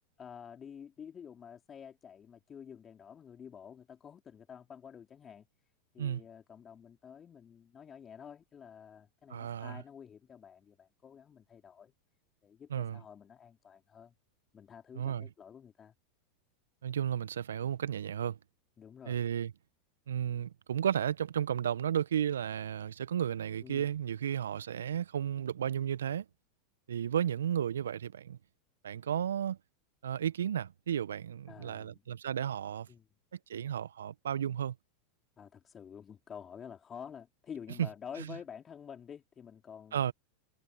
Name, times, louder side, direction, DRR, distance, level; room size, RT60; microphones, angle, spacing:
voice 1, 0.2-5.4 5.9-11.9 12.4-14.1 14.5-15.9 18.8-19.2 23.6-23.9 31.5-32.0 32.9-33.1 35.4-40.1, left 7 dB, 25° left, 3.8 m, -49 dB
voice 2, 9.3-9.8 12.7-13.0 14.9-15.3 16.8-18.4 19.0-19.5 20.1-26.2 26.9-28.4 28.8-29.6 30.0-32.9 33.5-34.7 37.8-37.9 39.9-40.1, right 9 dB, 75° right, 1.5 m, -33 dB
figure-of-eight pair, 90°, 0 cm